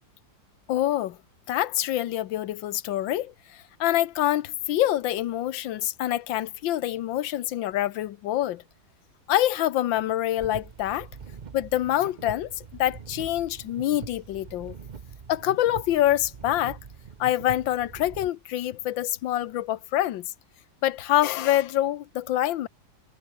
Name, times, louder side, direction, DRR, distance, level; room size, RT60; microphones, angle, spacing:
voice 1, 0.7-1.2 1.5-3.3 3.8-8.6 9.3-11.1 11.5-14.7 15.3-16.8 17.2-20.3 20.8-22.7, left 13 dB, 90° left, 1.6 m, -26 dB
sound 1, 10.4-18.3, right 6 dB, 50° right, 0.5 m, -43 dB
omnidirectional pair, 2.0 m